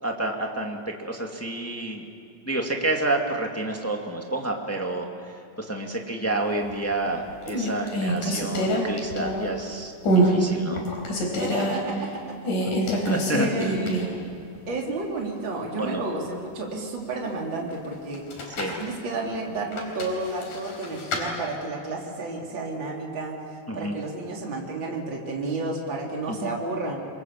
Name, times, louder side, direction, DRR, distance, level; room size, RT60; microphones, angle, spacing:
voice 1, 0.0-2.0 2.4-5.1 5.6-9.9 10.2-10.9 13.1-13.7 15.8-16.0 18.6-18.8 23.7-23.9 26.4-26.5, right 2 dB, 5° left, 1 dB, 1.6 m, -29 dB
sound 1, 6.7-7.1 7.5-9.6 10.0-10.4 10.7-11.8 12.4-14.2 14.5-14.6 18.1-18.8 19.7-21.2, right 1 dB, 85° left, 5.7 m, -25 dB
voice 2, 11.4-12.1 12.4-12.5 12.8-13.0 13.3-14.0 14.7-18.2 18.6-23.4 23.7-27.0, right 2 dB, 35° right, -1 dB, 4.0 m, -31 dB
27.0 x 23.0 x 7.2 m, 2.6 s
omnidirectional pair, 3.5 m